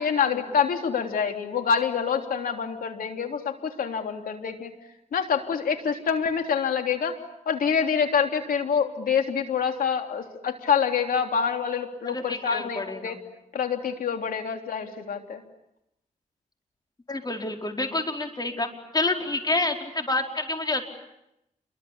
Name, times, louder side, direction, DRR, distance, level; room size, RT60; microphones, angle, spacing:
voice 1, 0.0-4.7 5.1-7.2 7.4-13.2 13.5-15.4, left 6 dB, 80° left, 5 dB, 3.3 m, -26 dB
voice 2, 12.0-13.2 17.1-18.7 18.9-20.9, left 2 dB, 30° left, 3 dB, 4.8 m, -28 dB
28.5 x 23.5 x 8.7 m, 0.85 s
cardioid pair, 80°, 14 cm